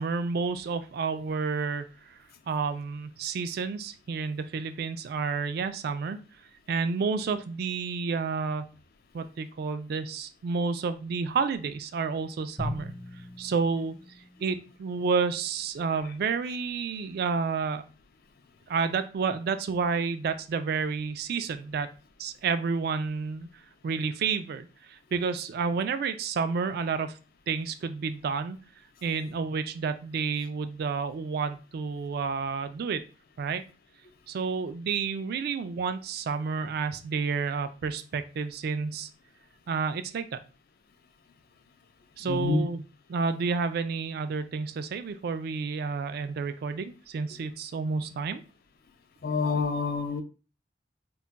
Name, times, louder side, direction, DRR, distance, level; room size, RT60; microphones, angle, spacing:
voice 1, 0.0-1.8 2.5-6.2 6.7-8.7 9.1-12.9 13.4-13.9 14.4-17.8 18.7-21.9 22.2-23.5 23.8-27.1 27.5-28.6 29.0-33.0 33.4-33.6 34.3-39.1 39.7-40.4 42.2-42.8 43.1-48.4, right 5 dB, 60° right, 0.3 m, -30 dB
Drum, 12.6-15.0, left 1 dB, 5° left, 0.5 m, -39 dB
voice 2, 42.2-42.6 49.2-50.2, left 4 dB, 60° left, 0.4 m, -27 dB
2.3 x 2.1 x 3.9 m
head